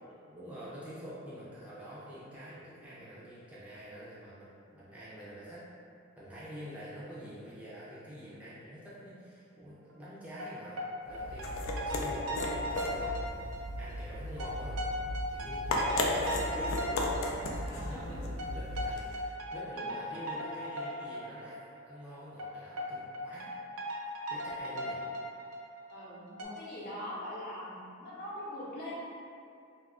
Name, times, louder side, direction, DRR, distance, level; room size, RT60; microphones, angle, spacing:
voice 1, 0.0-5.6 6.2-13.1 13.8-14.9 15.3-16.9 17.4-21.6 21.8-23.5 24.3-25.0 26.7-26.8, equal, 5° right, -10 dB, 0.4 m, -47 dB
sound 1, 10.4-10.5 10.8-10.9 11.1-14.0 14.3-18.0 18.4-21.6 21.9-22.0 22.4-22.5 22.8-22.9 23.1-25.6 25.9-26.0 26.4-26.5, equal, 85° right, 0.5 m, -37 dB
sound 2, 11.1-19.3, left 1 dB, 65° left, 0.4 m, -35 dB
voice 2, 17.6-18.0 19.7-19.9 25.9-28.9, left 1 dB, 50° left, -8 dB, 0.7 m, -42 dB
2.3 x 2.3 x 3.5 m, 2.4 s
head